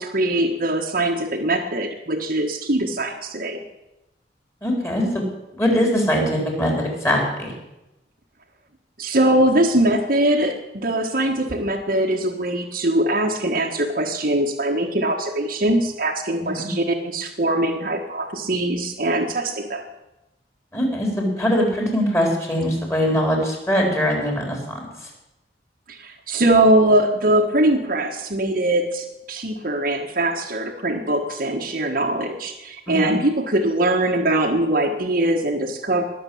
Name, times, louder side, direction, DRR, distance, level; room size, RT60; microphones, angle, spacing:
voice 1, 0.0-3.6 9.0-19.8 25.9-36.0, right 1 dB, 50° right, 0 dB, 1.5 m, -21 dB
voice 2, 4.6-5.1 5.6-7.5 16.4-16.7 20.7-24.8 32.9-33.1, equal, 15° left, 0 dB, 4.3 m, -22 dB
20.0 x 7.2 x 8.6 m, 0.94 s
head